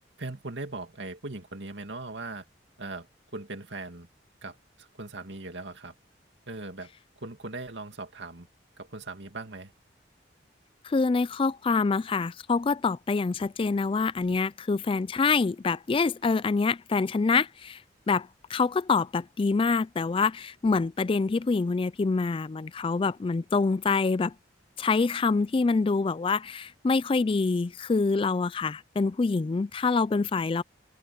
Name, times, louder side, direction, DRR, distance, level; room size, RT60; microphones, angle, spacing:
voice 1, 0.2-2.4 2.8-3.1 3.3-4.1 4.4-5.9 6.5-6.9 7.2-8.5 8.8-9.7, right 2 dB, 80° right, 2.3 m, -39 dB
voice 2, 10.8-17.8 18.1-24.3 24.8-30.6, left 4 dB, 30° left, 0.4 m, -26 dB
open air
head